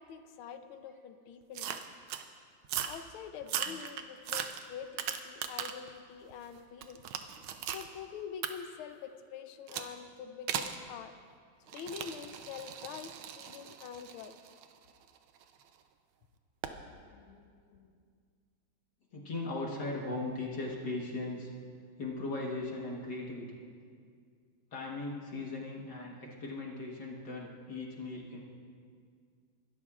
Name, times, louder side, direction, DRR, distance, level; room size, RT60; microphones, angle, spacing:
voice 1, 0.0-1.8 2.8-7.0 7.7-11.1 11.7-14.3, left 7 dB, 85° left, 9 dB, 1.6 m, -45 dB
sound 1, 1.6-2.3 2.6-3.0 3.4-5.9 6.3-7.9 8.4-8.5 9.7-9.9 10.5-10.8 11.7-15.6 16.6-16.8, right 9 dB, 85° right, 1.5 m, -38 dB
voice 2, 16.9-17.9 19.1-21.5 22.0-23.6 24.7-28.4, left 2 dB, 55° left, -2 dB, 1.9 m, -39 dB
25.0 x 12.5 x 2.4 m, 2.1 s
omnidirectional pair, 2.3 m